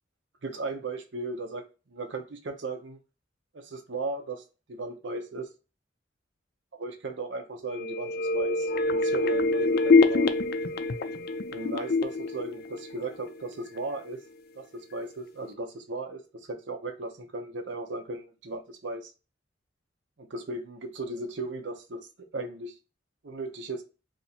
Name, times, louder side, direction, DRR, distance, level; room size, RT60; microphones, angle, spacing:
voice 1, 0.4-1.7 1.9-3.0 3.5-4.4 4.7-5.5 6.7-10.3 11.5-14.2 14.6-19.1 20.2-22.0 22.3-22.7 23.2-23.8, right 2 dB, 80° right, 0.7 m, -36 dB
sound 1, 7.7-13.4 13.8-13.9, left 3 dB, 55° left, 0.4 m, -25 dB
2.9 x 2.6 x 4.1 m
head